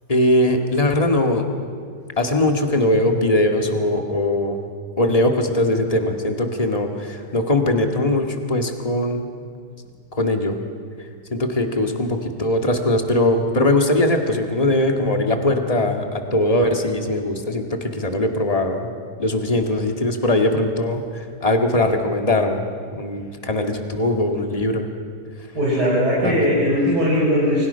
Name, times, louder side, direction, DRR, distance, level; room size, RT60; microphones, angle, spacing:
voice 1, 0.1-1.5 2.2-4.7 5.0-9.3 10.1-10.6 11.3-18.9 19.2-22.6 22.9-24.9 26.2-26.4, left 1 dB, 20° left, 3 dB, 2.0 m, -20 dB
voice 2, 25.5-27.7, equal, 70° right, -7 dB, 5.8 m, -19 dB
30.0 x 24.5 x 5.7 m, 2.1 s
omnidirectional pair, 1.8 m